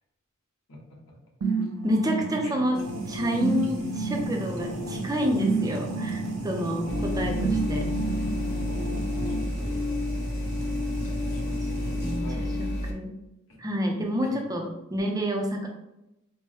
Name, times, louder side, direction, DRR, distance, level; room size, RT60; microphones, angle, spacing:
voice 1, 0.7-1.1 2.2-2.5 9.2-9.9 10.6-12.8 13.5-13.6 14.2-14.3, equal, 85° left, -2 dB, 1.1 m, -45 dB
sound 1, 1.4-9.4, right 4 dB, 85° right, 0.4 m, -31 dB
voice 2, 1.8-2.8 3.1-7.8 12.0-13.1 13.6-15.7, equal, 15° right, 1 dB, 0.5 m, -28 dB
sound 2, 2.7-12.2, right 1 dB, 65° right, 0.9 m, -38 dB
sound 3, 6.9-12.9, left 1 dB, 50° left, 0.6 m, -30 dB
4.6 x 2.1 x 3.0 m, 0.89 s
head